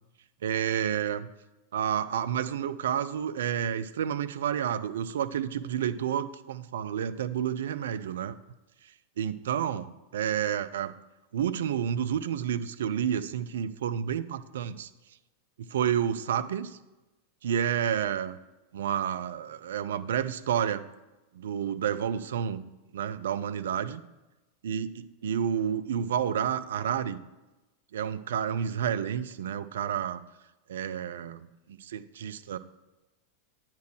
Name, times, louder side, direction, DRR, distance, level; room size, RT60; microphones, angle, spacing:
voice 1, 0.4-1.3 1.7-8.4 9.2-10.9 11.3-14.9 15.6-16.8 17.4-18.4 18.7-20.9 21.3-22.7 22.9-24.0 24.6-27.2 27.9-30.2 30.7-32.6, right 9 dB, 60° right, 12 dB, 0.4 m, -30 dB
9.3 x 4.5 x 6.2 m, 1.1 s
figure-of-eight pair, 90°, 0 cm